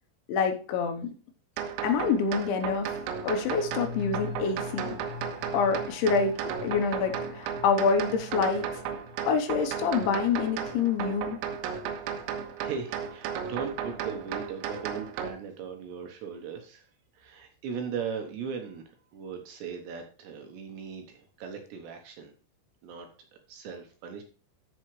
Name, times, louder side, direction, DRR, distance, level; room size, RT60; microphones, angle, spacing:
voice 1, 0.3-1.1 1.8-2.9 3.2-4.9 5.5-6.4 6.6-8.7 9.2-11.4, left 5 dB, 75° left, 5 dB, 3.1 m, -26 dB
sound 1, 1.6-15.3, right 7 dB, 90° right, 3.7 m, -35 dB
sound 2, 2.9-12.3 12.6-12.7, left 6 dB, 55° left, 4.5 m, -44 dB
voice 2, 12.4-16.9 17.1-22.3 22.8-23.1 23.5-24.2, right 6 dB, 75° right, 4 dB, 2.8 m, -38 dB
13.5 x 5.6 x 3.1 m, 0.37 s
omnidirectional pair, 5.8 m